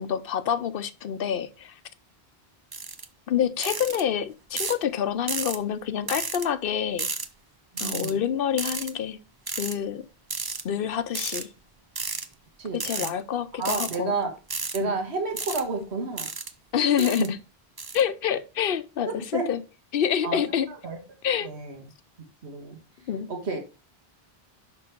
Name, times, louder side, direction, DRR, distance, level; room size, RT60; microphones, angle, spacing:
voice 1, 0.0-1.8 3.3-7.1 7.8-9.2 9.6-10.1 10.6-11.5 12.8-14.2 14.8-14.9 16.7-17.4 17.9-19.6 19.9-20.7 21.2-21.5 23.1-23.3, left 9 dB, 65° left, 0.8 m, -27 dB
sound 1, 2.7-3.0 3.6-4.0 4.6-4.8 5.3-5.6 6.1-6.5 7.0-7.3 7.8-8.1 8.6-8.9 9.5-9.7 10.3-10.6 11.1-11.4 12.0-12.3 12.7-13.1 13.6-14.0 14.5-14.8 15.4-15.6 16.2-16.5 17.0-17.3 17.8-18.0, right 4 dB, 30° right, 0.5 m, -32 dB
voice 2, 7.7-8.2 12.6-13.1 13.6-14.3 14.7-16.3 17.0-17.3 19.1-19.5 20.2-20.4 20.7-21.0 21.3-21.9 22.4-22.8 23.3-23.6, right 3 dB, 90° right, 1.7 m, -31 dB
6.1 x 5.8 x 4.4 m
omnidirectional pair, 1.1 m